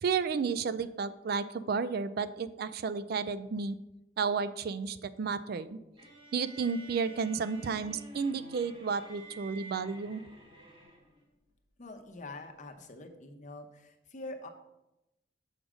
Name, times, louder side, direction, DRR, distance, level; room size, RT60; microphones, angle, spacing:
voice 1, 0.0-3.8 4.2-5.8 6.3-10.2, right 5 dB, 55° right, 14 dB, 0.4 m, -32 dB
sound 1, 6.0-11.2, right 2 dB, 30° right, 1.6 m, -52 dB
voice 2, 11.8-14.5, left 2 dB, 40° left, 4 dB, 0.9 m, -45 dB
6.3 x 5.0 x 6.2 m, 0.94 s
head